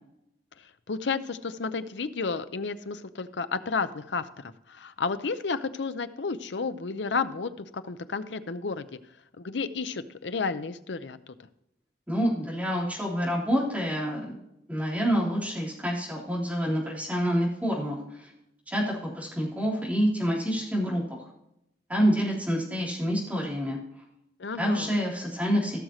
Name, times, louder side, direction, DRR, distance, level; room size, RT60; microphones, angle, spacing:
voice 1, 0.9-9.0 9.4-11.2 24.4-25.0, left 4 dB, 90° left, 12 dB, 0.7 m, -32 dB
voice 2, 12.1-14.3 14.7-18.3 18.7-21.2 21.9-23.8 24.6-25.8, equal, 10° right, -5 dB, 3.5 m, -27 dB
16.5 x 6.5 x 3.1 m, 0.82 s
head